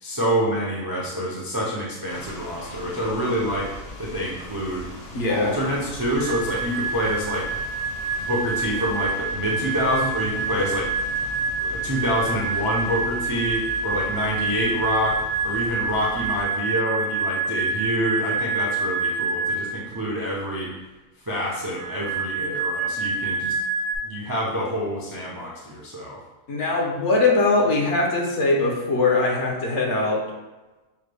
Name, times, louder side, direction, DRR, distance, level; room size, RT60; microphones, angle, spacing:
voice 1, 0.0-3.7 4.0-4.8 5.3-7.5 8.2-10.9 11.6-20.7 21.3-23.5 24.0-26.2, equal, 30° right, -5 dB, 0.4 m, -27 dB
sound 1, 2.1-16.4, left 1 dB, 45° left, 0.5 m, -40 dB
voice 2, 5.1-5.5 26.5-30.2, left 3 dB, 65° left, -1 dB, 1.1 m, -21 dB
sound 2, 6.2-19.9 21.8-24.0, right 3 dB, 60° right, 0.9 m, -27 dB
5.5 x 2.2 x 3.3 m, 1.1 s
omnidirectional pair, 1.4 m